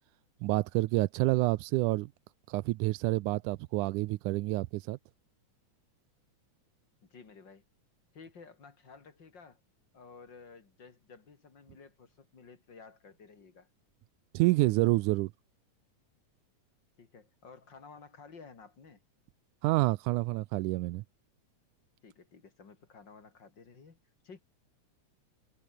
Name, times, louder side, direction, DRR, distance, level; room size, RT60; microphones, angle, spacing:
voice 1, 0.4-2.1 2.5-5.0 14.3-15.3 19.6-21.0, right 20 dB, 85° right, 2.1 m, -28 dB
voice 2, 7.0-7.6 8.1-9.6 9.9-13.7 17.0-19.0 22.0-24.0 24.2-24.4, left 5 dB, 35° left, 3.1 m, -53 dB
omnidirectional pair, 3.5 m